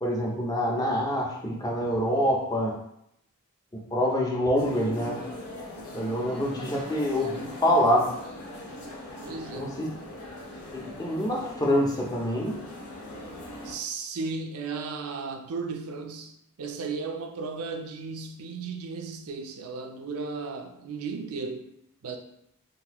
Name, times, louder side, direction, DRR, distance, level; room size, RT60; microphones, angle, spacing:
voice 1, 0.0-2.8 3.7-5.2 5.9-8.1 9.5-9.9 10.7-12.6, equal, 15° left, 0.5 m, -26 dB
sound 1, 4.6-13.7, left 1 dB, 85° left, 0.8 m, -41 dB
voice 2, 9.2-9.8 13.6-16.3 16.6-21.7 22.0-22.2, right 4 dB, 75° right, 0.5 m, -35 dB
3.8 x 2.6 x 2.9 m
head